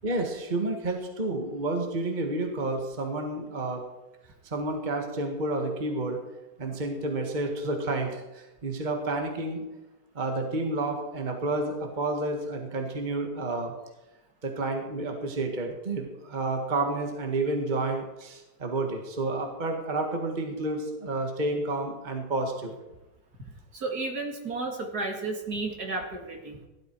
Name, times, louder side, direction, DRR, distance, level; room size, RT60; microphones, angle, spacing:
voice 1, 0.0-3.8 4.4-6.2 6.6-9.6 10.1-13.7 14.4-22.7, right 2 dB, 25° right, 3 dB, 1.8 m, -30 dB
voice 2, 23.7-26.6, right 3 dB, 55° right, 2 dB, 2.8 m, -32 dB
17.0 x 12.0 x 4.7 m, 1.0 s
omnidirectional pair, 2.0 m